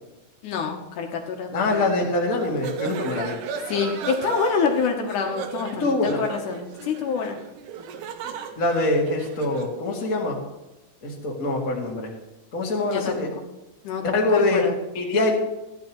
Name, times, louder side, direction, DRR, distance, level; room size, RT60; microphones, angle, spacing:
voice 1, 0.4-1.9 3.7-7.4 12.8-13.3 13.8-14.8, left 5 dB, 75° left, 2 dB, 2.4 m, -27 dB
voice 2, 1.5-3.4 5.8-6.2 8.6-10.4 11.0-12.1 12.5-13.3 14.1-14.7 14.9-15.4, left 2 dB, 30° left, -2 dB, 2.0 m, -24 dB
sound 1, 2.3-9.8, right 6 dB, 80° right, 2.3 m, -35 dB
14.5 x 10.5 x 3.0 m, 1.0 s
omnidirectional pair, 3.7 m